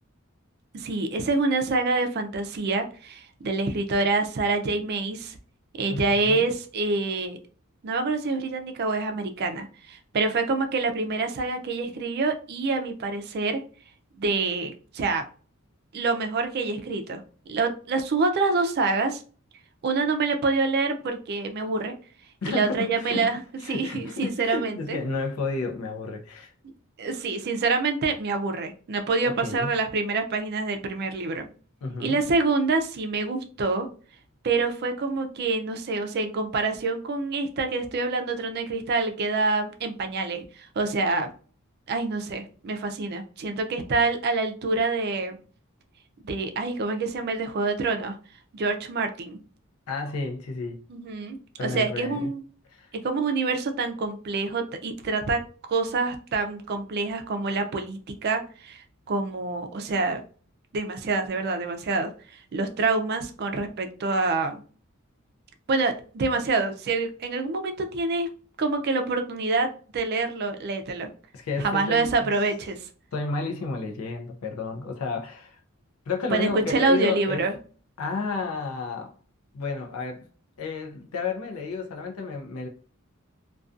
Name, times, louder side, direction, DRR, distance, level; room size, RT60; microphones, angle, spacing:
voice 1, 0.7-5.4 5.8-7.4 7.8-13.6 14.2-15.2 15.9-17.2 17.5-19.2 19.8-21.9 22.5-23.4 23.7-25.0 27.0-31.5 32.0-33.9 34.4-40.4 40.8-41.3 41.9-45.4 46.2-48.2 48.5-49.4 50.9-52.4 53.0-55.4 55.7-60.2 60.7-64.6 65.7-68.3 68.6-69.7 69.9-71.1 71.6-72.8 76.3-77.5, right 3 dB, 50° right, 0.4 m, -26 dB
voice 2, 5.9-6.4 22.4-26.5 29.2-29.7 31.8-32.2 49.9-50.8 51.6-52.3 52.7-52.9 71.3-72.3 73.1-75.6 76.1-77.5 78.0-79.1 79.5-80.3 80.6-82.7, left 4 dB, 90° left, 0.4 m, -31 dB
2.4 x 2.2 x 2.5 m
head